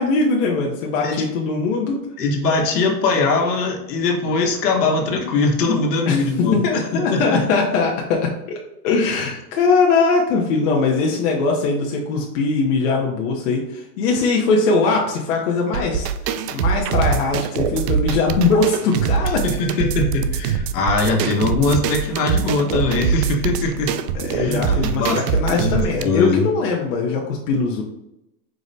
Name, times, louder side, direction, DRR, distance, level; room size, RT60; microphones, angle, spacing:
voice 1, 0.0-2.0 6.1-19.4 24.1-27.8, left 4 dB, 55° left, -1 dB, 0.7 m, -21 dB
voice 2, 2.2-6.6 6.9-7.4 19.4-23.9 24.3-25.2 25.5-26.4, left 3 dB, 75° left, 1 dB, 1.2 m, -21 dB
sound 1, 15.7-26.0, right 7 dB, 75° right, 0.5 m, -23 dB
4.8 x 2.1 x 3.9 m, 0.86 s
supercardioid pair, 150°, 49 cm